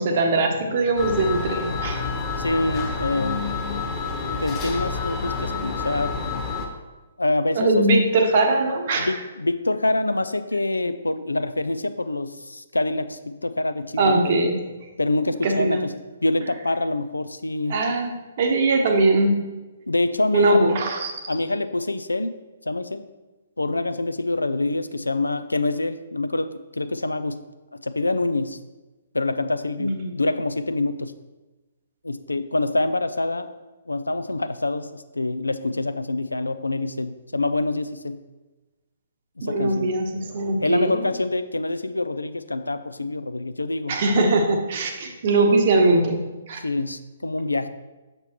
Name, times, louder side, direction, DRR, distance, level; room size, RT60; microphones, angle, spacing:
voice 1, 0.0-2.0 7.5-9.1 14.0-14.6 15.4-15.8 17.7-19.4 20.3-21.1 29.8-30.1 39.4-41.0 43.9-46.6, right 2 dB, 45° right, 4 dB, 1.0 m, -21 dB
sound 1, 1.0-6.7, left 4 dB, 15° left, 1.2 m, -28 dB
voice 2, 2.4-3.5 4.3-6.2 7.2-7.8 9.0-14.4 15.0-17.8 19.9-20.6 21.3-22.4 22.7-23.1 23.6-27.4 27.8-28.6 29.1-31.2 32.0-33.5 33.9-38.2 39.4-39.9 40.6-44.0 46.6-47.7, left 2 dB, 80° left, 12 dB, 0.4 m, -26 dB
6.9 x 6.7 x 3.0 m, 1.1 s
figure-of-eight pair, 130°, 0 cm